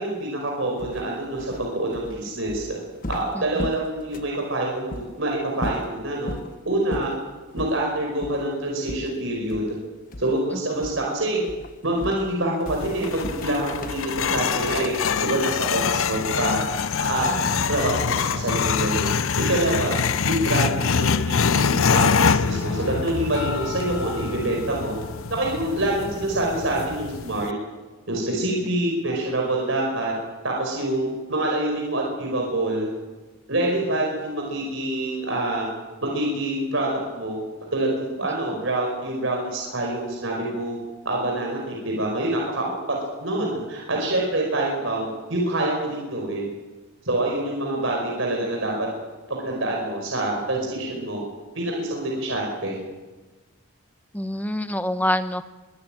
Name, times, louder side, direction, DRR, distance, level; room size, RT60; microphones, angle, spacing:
voice 1, 0.0-2.8 3.1-6.3 6.7-7.1 7.5-9.7 10.2-11.4 11.8-14.9 15.2-16.6 17.0-19.1 19.4-20.0 20.2-24.9 25.3-27.5 28.1-30.1 30.4-32.9 33.5-35.7 36.0-37.4 37.7-40.8 41.1-46.4 47.1-48.9 49.3-51.2 51.5-52.8, right 1 dB, 65° right, -1 dB, 5.2 m, -26 dB
sound 1, 0.8-4.4 4.9-5.1 5.5-6.5 6.9-7.2 7.6-7.8 8.2-8.4 8.9-9.8 10.1-10.5 10.8-11.1 11.5-15.4, left 1 dB, 40° left, 1.1 m, -36 dB
sound 2, 12.7-27.5, left 6 dB, 70° left, 0.6 m, -25 dB
voice 2, 17.3-17.6 54.1-55.5, left 1 dB, 5° left, 10 dB, 0.9 m, -26 dB
23.5 x 14.5 x 9.1 m, 1.2 s
head